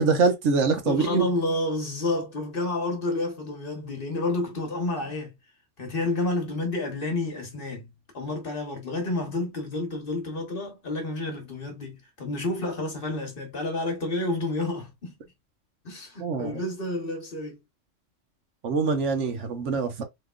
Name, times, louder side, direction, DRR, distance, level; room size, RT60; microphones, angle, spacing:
voice 1, 0.0-1.3 16.2-16.6 18.6-20.0, right 4 dB, 70° right, 1.1 m, -24 dB
voice 2, 0.8-5.4 5.8-15.2 15.8-17.6, left 2 dB, 50° left, 1.2 m, -30 dB
3.5 x 3.0 x 2.3 m
omnidirectional pair, 1.3 m